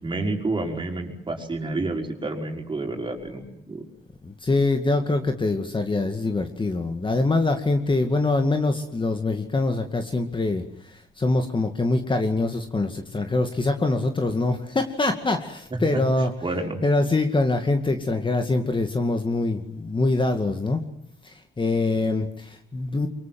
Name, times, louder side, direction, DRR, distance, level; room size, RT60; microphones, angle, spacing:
voice 1, 0.0-3.8 15.7-16.0 16.4-16.8, right 2 dB, 25° right, 2 dB, 5.6 m, -29 dB
voice 2, 4.2-16.3 16.8-20.8 21.2-23.1, left 2 dB, 25° left, 5 dB, 2.3 m, -24 dB
24.0 x 23.5 x 7.8 m, 0.71 s
cardioid pair, 90°, 20 cm